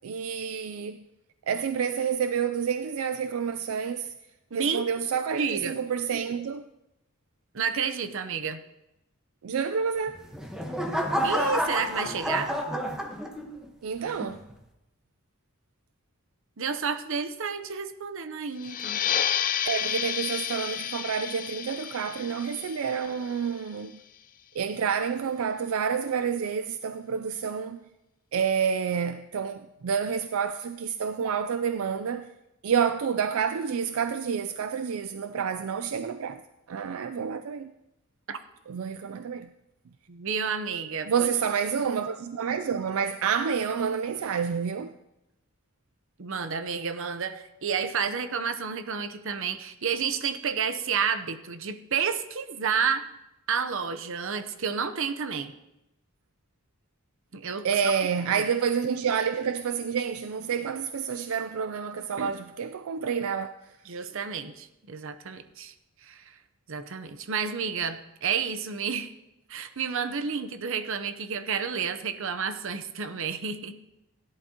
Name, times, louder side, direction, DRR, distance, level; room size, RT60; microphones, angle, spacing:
voice 1, 0.0-1.0 1.5-4.1 4.5-6.6 9.4-10.2 13.8-14.4 19.6-24.0 24.5-27.8 28.3-32.3 32.6-36.4 36.7-37.7 38.7-39.5 41.1-44.9 57.6-63.5, right 7 dB, 85° right, 0.4 m, -29 dB
voice 2, 4.5-4.9 5.4-5.7 7.5-8.6 11.2-12.5 16.6-19.0 38.3-38.4 40.1-41.3 46.2-53.0 53.5-55.5 57.3-57.7 58.2-58.3 62.2-62.3 63.9-65.7 66.0-66.3 66.7-69.1 69.5-73.7, right 6 dB, 65° right, 0.8 m, -30 dB
sound 1, 10.1-13.7 14.2-14.5, equal, 5° right, 1.1 m, -29 dB
sound 2, 18.6-23.8, left 9 dB, 40° left, 0.5 m, -31 dB
17.0 x 11.0 x 2.9 m
head